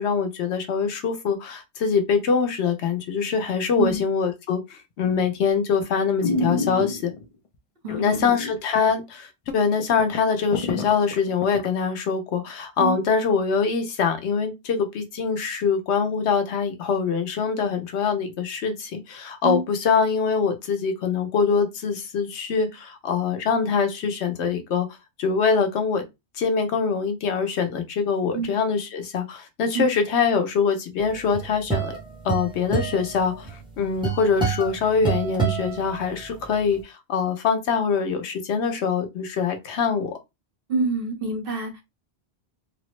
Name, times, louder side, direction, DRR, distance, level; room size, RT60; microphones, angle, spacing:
voice 1, 0.0-7.1 8.0-24.9 25.2-26.0 26.4-32.0 32.2-40.2, left 5 dB, 85° left, 1.0 m, -24 dB
sound 1, 5.0-5.4 5.8-5.9 6.2-7.2 7.9-8.6 8.9-9.0 9.5-9.6 9.8-11.7 12.1-12.2, left 2 dB, 40° left, 0.5 m, -28 dB
voice 2, 7.8-8.3 12.8-13.0 19.4-19.6 28.3-28.5 29.7-29.8 40.7-41.8, right 3 dB, 60° right, 1.2 m, -26 dB
sound 2, 31.1-36.5, right 5 dB, 5° right, 0.9 m, -28 dB
3.3 x 2.0 x 3.0 m
omnidirectional pair, 1.1 m